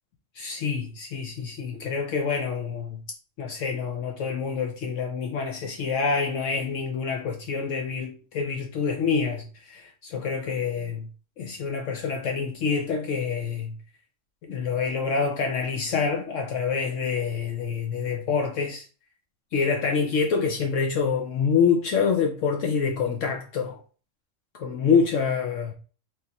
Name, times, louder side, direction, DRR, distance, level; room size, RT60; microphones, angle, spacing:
voice 1, 0.4-3.0 3.4-11.1 11.4-13.7 14.4-18.9 19.5-23.8 24.5-25.7, left 5 dB, 70° left, 1.0 m, -26 dB
3.8 x 3.1 x 4.0 m
omnidirectional pair, 1.4 m